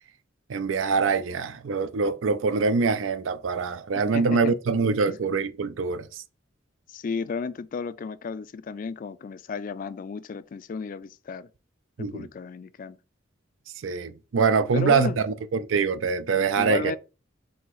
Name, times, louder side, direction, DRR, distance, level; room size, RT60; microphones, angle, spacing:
voice 1, 0.5-6.2 12.0-12.3 13.8-16.9, right 5 dB, 85° right, 0.4 m, -24 dB
voice 2, 4.1-4.5 5.1-5.2 6.9-11.5 12.0-13.0 14.7-15.2 16.3-17.0, left 5 dB, 45° left, 0.3 m, -33 dB
5.4 x 2.8 x 3.0 m
head